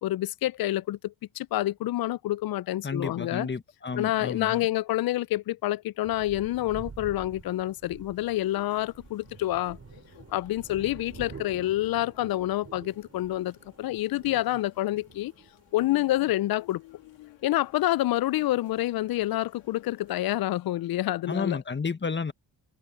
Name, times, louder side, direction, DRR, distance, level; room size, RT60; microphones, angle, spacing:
voice 1, 0.0-3.5 4.0-9.8 10.3-15.3 15.7-16.8 17.4-21.6, left 15 dB, 55° left, 0.6 m, -28 dB
voice 2, 2.8-4.7 21.2-22.3, left 5 dB, 25° left, 1.7 m, -31 dB
sound 1, 6.0-19.7 20.1-20.2, right 5 dB, 35° right, 3.9 m, -49 dB
sound 2, 8.2-20.9, left 20 dB, 85° left, 3.3 m, -56 dB
supercardioid pair, 60°, 43 cm